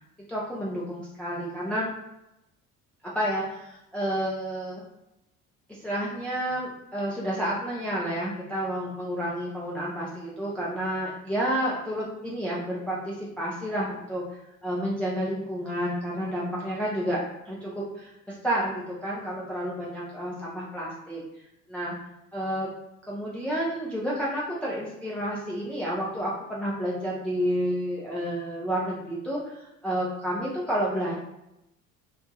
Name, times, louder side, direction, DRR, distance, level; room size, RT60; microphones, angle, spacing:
voice 1, 0.3-1.9 3.1-4.8 5.7-14.2 14.6-17.2 17.5-21.2 21.7-21.9 22.3-22.7 23.1-31.2, equal, 5° left, -6 dB, 0.5 m, -30 dB
2.9 x 2.5 x 2.2 m, 0.88 s
figure-of-eight pair, 60°, 44 cm